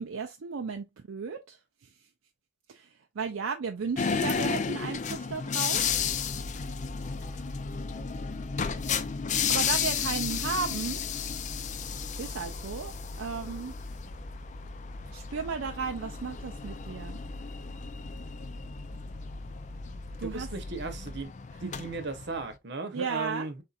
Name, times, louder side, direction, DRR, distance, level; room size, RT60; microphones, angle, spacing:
voice 1, 0.0-2.1 2.7-5.9 7.2-7.3 9.5-11.0 12.0-12.9 13.2-13.7 15.1-17.2 20.2-20.5 21.6-21.7 22.9-23.6, right 5 dB, 75° right, 0.5 m, -35 dB
sound 1, 4.0-22.5, left 7 dB, 35° left, 0.4 m, -34 dB
sound 2, 5.8-21.2, left 1 dB, 50° left, 0.9 m, -42 dB
voice 2, 20.2-21.3 21.6-23.6, right 3 dB, 55° right, 0.9 m, -36 dB
4.2 x 3.7 x 2.4 m
head